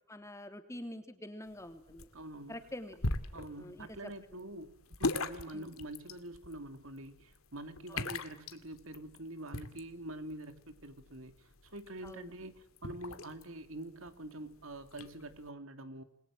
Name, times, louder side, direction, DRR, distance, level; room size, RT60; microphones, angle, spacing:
voice 1, 0.1-2.1 2.5-3.0 3.4-4.1 4.4-4.6 5.5-5.7 7.9-8.2 12.0-12.3, left 1 dB, 15° left, 7 dB, 3.0 m, -47 dB
sound 1, 1.5-15.5, left 2 dB, 85° left, 2.2 m, -42 dB
voice 2, 2.1-2.6 3.3-16.0, right 1 dB, 70° right, 9 dB, 3.0 m, -46 dB
29.0 x 22.0 x 7.7 m, 0.75 s
head